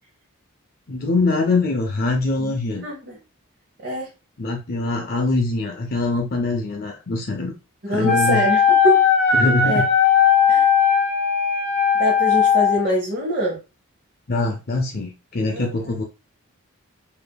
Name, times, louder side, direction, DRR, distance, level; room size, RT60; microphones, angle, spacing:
voice 1, 0.9-2.8 4.4-7.5 7.9-8.4 9.3-9.9 14.3-16.0, left 2 dB, 40° left, 1 dB, 0.5 m, -23 dB
voice 2, 2.8-3.2 3.8-4.1 7.8-9.8 10.5-10.7 12.0-13.6 15.5-16.0, equal, 45° right, -3 dB, 0.8 m, -25 dB
Wind instrument woodwind instrument, 8.0-12.8, left 7 dB, 5° left, 1.2 m, -17 dB
5.1 x 2.6 x 2.2 m, 0.29 s
head